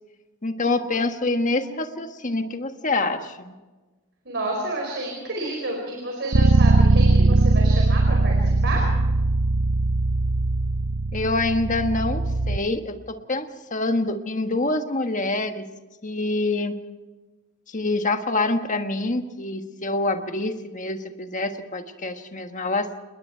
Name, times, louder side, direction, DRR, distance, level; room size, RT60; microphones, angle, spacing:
voice 1, 0.4-3.5 11.1-15.7 16.0-16.7 17.7-22.9, left 2 dB, 35° left, 6 dB, 1.5 m, -26 dB
voice 2, 4.2-8.8, right 2 dB, 50° right, 0 dB, 4.8 m, -30 dB
Bass guitar, 6.3-12.6, right 2 dB, 85° right, 0.9 m, -20 dB
28.5 x 21.0 x 4.6 m, 1.2 s
head